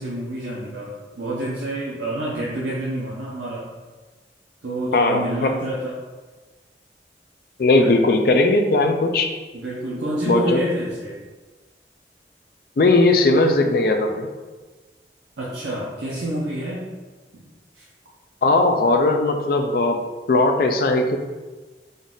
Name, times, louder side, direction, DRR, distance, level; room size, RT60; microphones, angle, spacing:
voice 1, 0.0-3.7 4.6-6.0 7.8-7.9 9.5-11.2 15.4-16.9 17.3-17.5 17.7-17.9, right 1 dB, 80° right, -6 dB, 0.7 m, -28 dB
voice 2, 4.9-5.5 7.6-9.3 10.3-10.6 12.8-14.3 18.4-20.0 20.3-21.2, left 2 dB, 55° left, 4 dB, 0.4 m, -18 dB
3.9 x 2.4 x 3.6 m, 1.3 s
head